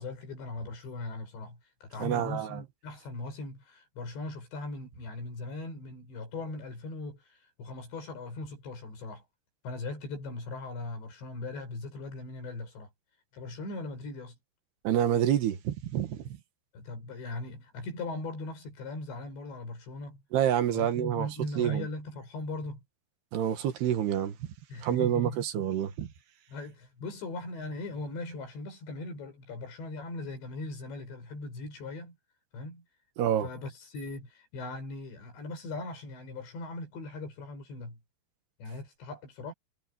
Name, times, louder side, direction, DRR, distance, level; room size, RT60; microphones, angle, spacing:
voice 1, 0.0-9.2 9.6-12.9 13.3-14.4 16.7-20.2 20.7-22.8 24.7-25.4 26.5-32.2 32.5-32.8 33.2-38.0 38.6-39.5, left 3 dB, 90° left, 9.2 m, -39 dB
voice 2, 2.0-2.6 14.9-16.4 20.3-21.9 23.3-24.5 24.8-26.1 33.2-33.5, right 10 dB, 70° right, 3.6 m, -28 dB
omnidirectional pair, 4.9 m